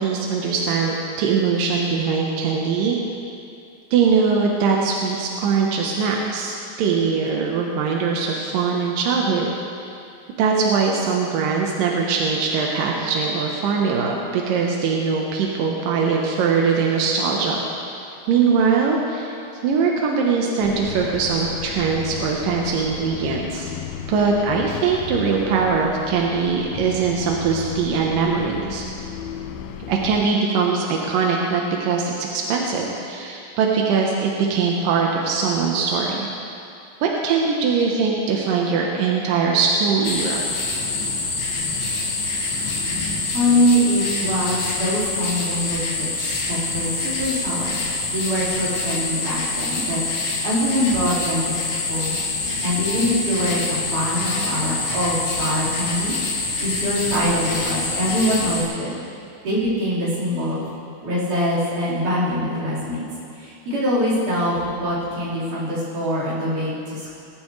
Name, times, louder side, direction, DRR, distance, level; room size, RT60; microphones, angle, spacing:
voice 1, 0.0-3.0 3.9-9.5 9.8-9.9 10.4-17.9 18.3-19.3 19.6-23.7 24.1-28.8 29.9-36.3 37.0-40.4, right 5 dB, 70° right, -1 dB, 2.2 m, -21 dB
sound 1, 20.6-30.3, left 9 dB, 85° left, 2.2 m, -34 dB
sound 2, 40.0-58.6, left 3 dB, 60° left, 3.8 m, -26 dB
voice 2, 43.3-50.0 50.4-51.6 51.9-52.2 52.6-59.0 59.4-60.6 61.0-63.0 63.3-67.2, equal, 45° right, -9 dB, 5.7 m, -23 dB
22.0 x 13.5 x 3.2 m, 2.5 s
omnidirectional pair, 5.1 m